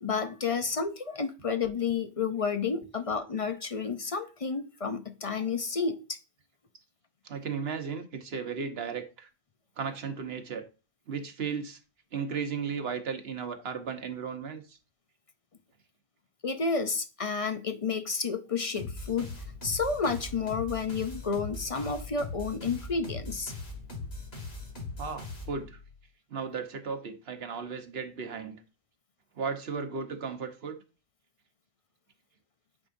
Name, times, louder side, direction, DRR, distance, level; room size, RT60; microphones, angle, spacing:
voice 1, 0.0-6.2 16.4-23.5, left 5 dB, 40° left, 0.6 m, -31 dB
voice 2, 7.2-9.3 9.8-10.6 11.1-11.8 12.1-14.8 25.0-25.8 26.3-28.6 29.3-30.8, right 6 dB, 70° right, 1.2 m, -35 dB
sound 1, 18.8-25.9, left 3 dB, 70° left, 2.1 m, -40 dB
8.8 x 4.6 x 2.6 m
omnidirectional pair, 1.1 m